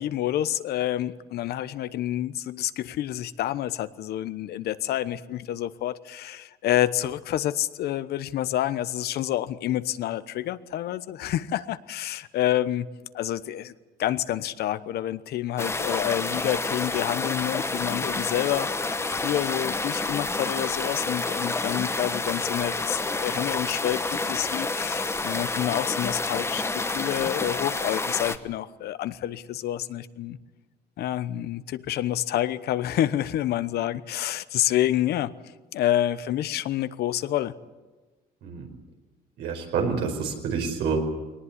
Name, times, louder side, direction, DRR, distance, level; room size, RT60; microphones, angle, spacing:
voice 1, 0.0-12.9 13.1-13.7 14.0-18.7 19.1-30.4 31.0-35.3 35.7-37.5, left 12 dB, 70° left, 14 dB, 1.0 m, -28 dB
sound 1, 15.6-28.4, left 3 dB, 15° left, 1.2 m, -29 dB
voice 2, 39.4-41.0, right 5 dB, 80° right, 3 dB, 4.8 m, -27 dB
21.0 x 19.0 x 9.9 m, 1.2 s
cardioid pair, 110°, 17 cm